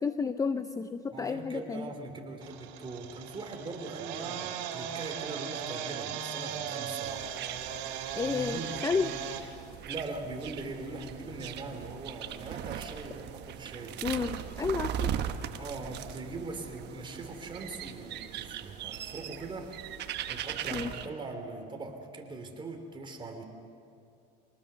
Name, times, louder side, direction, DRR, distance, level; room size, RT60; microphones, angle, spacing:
voice 1, 0.0-1.9 8.2-9.1 14.0-15.1 20.7-20.9, left 5 dB, 15° left, 10 dB, 0.5 m, -31 dB
voice 2, 1.1-7.3 8.2-9.2 9.9-14.0 15.6-19.7 20.3-23.4, right 2 dB, 25° right, 3 dB, 3.3 m, -41 dB
sound 1, 2.4-9.4, right 9 dB, 75° right, 2.9 m, -38 dB
sound 2, 7.0-21.1, right 10 dB, 55° right, 1.2 m, -39 dB
25.0 x 19.0 x 6.9 m, 2.5 s
cardioid pair, 120°, 21 cm